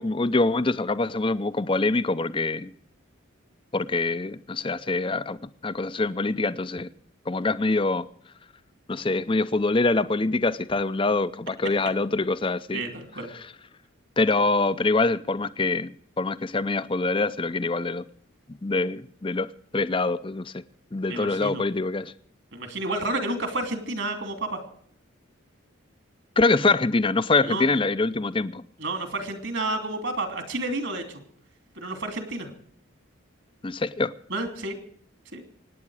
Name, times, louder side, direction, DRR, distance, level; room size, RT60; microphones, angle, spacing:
voice 1, 0.0-2.7 3.7-5.4 5.6-6.9 7.3-8.1 8.9-12.8 14.2-18.0 18.6-20.5 20.9-22.1 26.4-28.6 33.6-34.1, left 3 dB, 25° left, 0.5 m, -24 dB
voice 2, 12.7-13.3 21.1-21.6 22.5-24.6 27.4-27.7 28.8-31.2 31.8-32.5 34.3-34.8 35.3-35.4, right 2 dB, 60° right, 2.9 m, -30 dB
25.5 x 9.8 x 4.8 m
head